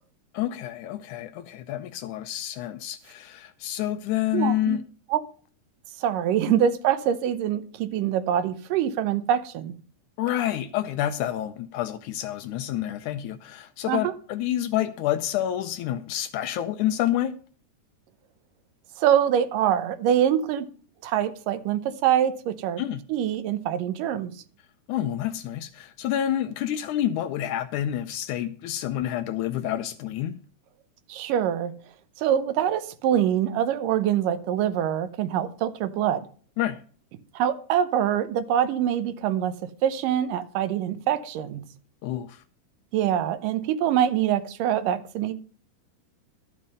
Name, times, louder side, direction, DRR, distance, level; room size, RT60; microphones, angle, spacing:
voice 1, 0.3-4.8 6.5-6.6 10.2-17.4 22.8-23.0 24.9-30.4 36.6-36.8 42.0-42.4, left 12 dB, 75° left, 1.9 m, -28 dB
voice 2, 4.3-4.8 5.1-5.2 6.0-9.7 13.9-14.1 19.0-20.7 21.0-22.8 23.1-24.3 31.1-31.7 32.2-36.3 37.4-39.5 39.8-41.6 42.9-45.3, right 10 dB, 80° right, 2.5 m, -24 dB
12.5 x 7.6 x 5.3 m
omnidirectional pair, 3.9 m